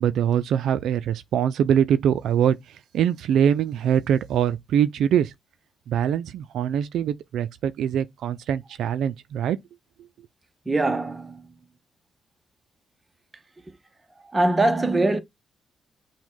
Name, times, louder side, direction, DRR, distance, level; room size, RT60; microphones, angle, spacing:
voice 1, 0.0-2.6 2.9-5.3 5.9-9.6, right 9 dB, 75° right, 0.4 m, -23 dB
voice 2, 10.7-11.5 14.3-15.2, right 2 dB, 20° right, 0.9 m, -22 dB
6.0 x 2.3 x 3.7 m
cardioid pair, 90°, 0 cm